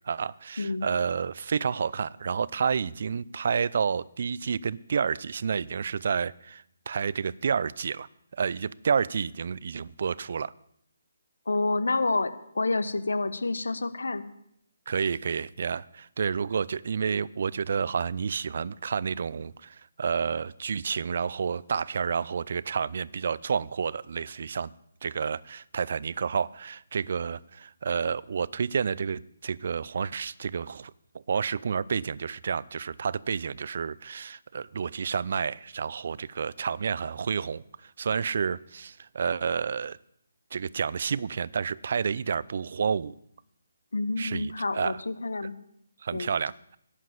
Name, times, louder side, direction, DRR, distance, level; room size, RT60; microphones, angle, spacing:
voice 1, 0.0-8.1 8.3-10.5 14.9-24.7 25.0-30.9 31.3-37.6 38.0-40.0 40.5-43.2 44.2-45.0 46.0-46.8, right 6 dB, 55° right, 21 dB, 0.4 m, -30 dB
voice 2, 0.6-0.9 11.5-14.2 43.9-45.6 46.1-46.3, left 3 dB, 75° left, 12 dB, 1.0 m, -28 dB
11.0 x 7.4 x 8.5 m, 0.72 s
figure-of-eight pair, 145°, 0 cm